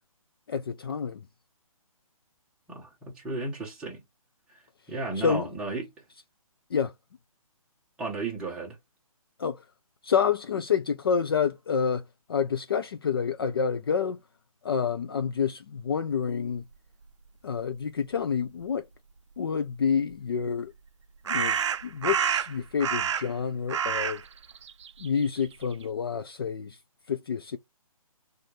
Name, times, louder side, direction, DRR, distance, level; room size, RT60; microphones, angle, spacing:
voice 1, 0.5-1.3 5.2-5.5 6.7-6.9 9.4-9.6 10.0-14.2 14.6-16.6 17.4-18.9 19.4-20.7 21.3-24.2 25.0-26.8 27.1-27.6, left 6 dB, 40° left, 0.4 m, -28 dB
voice 2, 2.7-4.0 4.9-5.9 8.0-8.8, right 3 dB, 5° right, 1.1 m, -34 dB
sound 1, 20.1-20.2 21.3-23.4 23.7-25.8, right 7 dB, 55° right, 0.4 m, -28 dB
4.1 x 2.6 x 3.2 m
hypercardioid pair, 165°, 19 cm